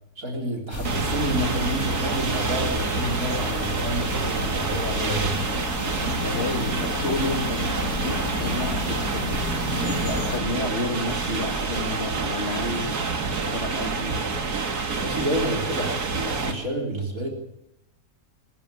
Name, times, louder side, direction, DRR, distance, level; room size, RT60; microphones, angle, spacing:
voice 1, 0.2-5.4 14.9-17.3, right 1 dB, 60° right, 0 dB, 4.2 m, -29 dB
sound 1, 0.7-10.4, left 2 dB, 60° left, 3.8 m, -31 dB
sound 2, 0.8-16.5, right 4 dB, 80° right, 2.5 m, -28 dB
voice 2, 6.1-9.4 9.8-13.0 13.4-14.2, left 2 dB, 40° left, 4 dB, 3.1 m, -31 dB
23.0 x 14.0 x 8.9 m, 0.85 s
omnidirectional pair, 1.6 m